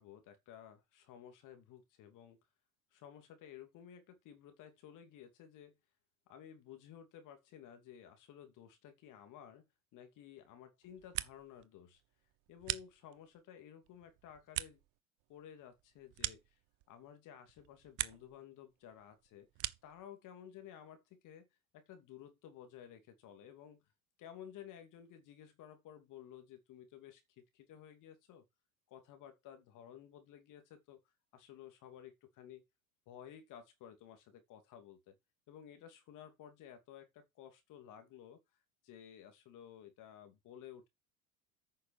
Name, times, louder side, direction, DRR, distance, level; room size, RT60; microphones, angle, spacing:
voice 1, 0.0-2.4 2.9-5.8 6.3-9.6 9.9-12.0 12.5-14.8 15.3-16.4 16.9-19.5 19.8-21.5 21.7-23.8 24.2-28.4 28.9-31.0 31.3-32.6 33.1-35.1 35.5-38.4 38.8-40.9, left 9 dB, 45° left, 2.8 m, -54 dB
sound 1, 10.8-11.7 12.0-13.4 13.8-17.1 17.5-18.4 18.7-20.0, right 19 dB, 50° right, 0.8 m, -43 dB
9.3 x 6.4 x 4.7 m
hypercardioid pair, 80°, 42 cm